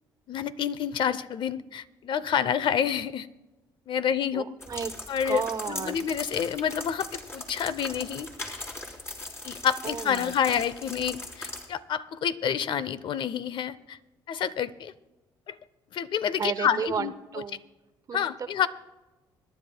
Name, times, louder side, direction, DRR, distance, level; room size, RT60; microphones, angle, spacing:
voice 1, 0.3-3.3 3.9-4.4 5.1-5.4 5.7-8.3 9.4-14.0 14.3-14.9 15.5-15.6 15.9-17.1 18.1-18.7, left 8 dB, 60° left, 16 dB, 0.7 m, -28 dB
voice 2, 4.3-4.9 5.2-6.0 9.8-10.3 16.4-17.6 18.1-18.5, right 6 dB, 40° right, 12 dB, 0.8 m, -33 dB
sound 1, 4.6-11.6, left 2 dB, 30° left, 3.6 m, -40 dB
25.5 x 11.0 x 2.3 m, 1.1 s
cardioid pair, 90°, 9 cm